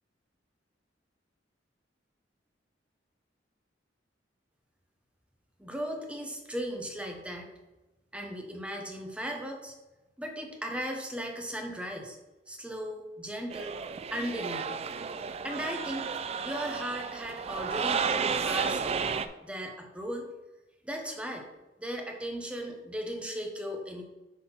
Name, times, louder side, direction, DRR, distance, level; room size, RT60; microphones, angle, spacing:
voice 1, 5.6-7.5 8.1-9.7 10.2-12.2 12.5-13.8 14.1-14.9 15.4-16.1 16.4-18.8 19.4-20.3 20.8-21.5 21.8-24.0, equal, 5° right, 2 dB, 0.9 m, -37 dB
sound 1, 13.5-19.3, right 6 dB, 35° right, 0.4 m, -32 dB
6.0 x 4.2 x 5.6 m, 1.1 s
head